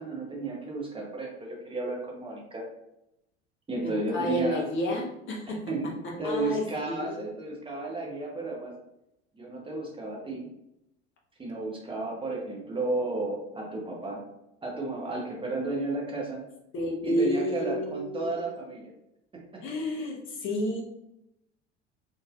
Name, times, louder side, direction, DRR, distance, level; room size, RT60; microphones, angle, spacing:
voice 1, 0.0-2.6 3.7-4.6 5.5-5.9 6.2-8.7 9.3-10.5 11.4-14.2 14.6-16.4 17.0-18.9 19.3-19.6, right 2 dB, 15° right, -2 dB, 0.8 m, -33 dB
voice 2, 3.8-5.6 6.0-7.4 16.7-18.4 19.6-20.8, left 1 dB, 35° left, -1 dB, 0.8 m, -31 dB
3.9 x 2.6 x 2.3 m, 0.83 s
figure-of-eight pair, 70°, 34 cm